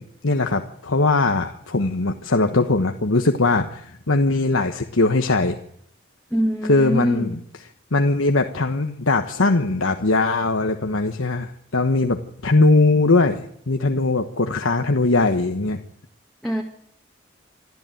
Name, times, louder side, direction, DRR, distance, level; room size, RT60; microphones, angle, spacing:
voice 1, 0.0-5.6 6.6-7.4 7.9-13.4 13.7-15.8, left 3 dB, 90° left, 5 dB, 1.3 m, -20 dB
voice 2, 6.3-7.3 16.4-16.6, equal, ahead, -2 dB, 2.0 m, -23 dB
26.0 x 13.0 x 9.2 m, 0.71 s
head